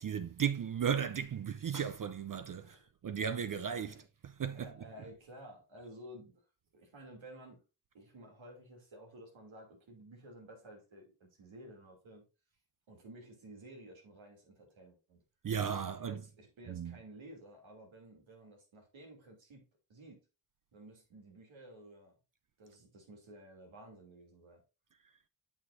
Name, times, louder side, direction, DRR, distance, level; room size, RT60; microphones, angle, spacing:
voice 1, 0.0-2.8 3.0-4.7 15.4-16.2 16.7-16.9, right 7 dB, 45° right, 0.5 m, -35 dB
voice 2, 2.6-2.9 3.9-4.0 4.5-6.4 6.7-7.6 7.9-12.2 12.9-15.2 15.8-19.6 19.9-20.2 20.7-22.1 22.6-24.6, right 1 dB, 90° right, 2.8 m, -53 dB
9.0 x 6.1 x 2.6 m
cardioid pair, 70°, 46 cm